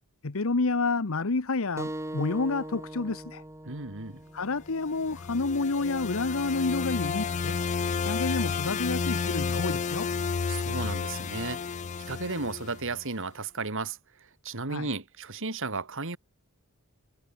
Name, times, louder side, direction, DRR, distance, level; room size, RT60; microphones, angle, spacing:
voice 1, 0.2-3.4 4.3-7.6 8.0-10.1 14.7-14.9, left 3 dB, 65° left, 1.0 m, -29 dB
sound 1, 1.8-6.9, right 1 dB, 15° right, 1.8 m, -42 dB
voice 2, 3.6-4.2 10.5-16.2, right 3 dB, 60° right, 2.9 m, -34 dB
sound 2, 4.9-13.0, left 5 dB, 35° left, 0.4 m, -31 dB
head